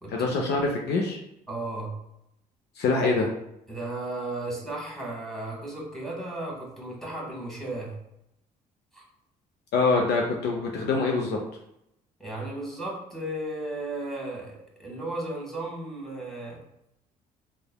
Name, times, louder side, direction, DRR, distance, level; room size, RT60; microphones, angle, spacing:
voice 1, 0.1-1.2 2.8-3.3 9.7-11.4, left 3 dB, 55° left, 0 dB, 0.5 m, -24 dB
voice 2, 1.5-2.0 3.7-7.9 8.9-9.0 12.2-16.6, right 2 dB, ahead, -3 dB, 1.3 m, -35 dB
3.1 x 2.2 x 2.2 m, 0.80 s
hypercardioid pair, 50°, 20 cm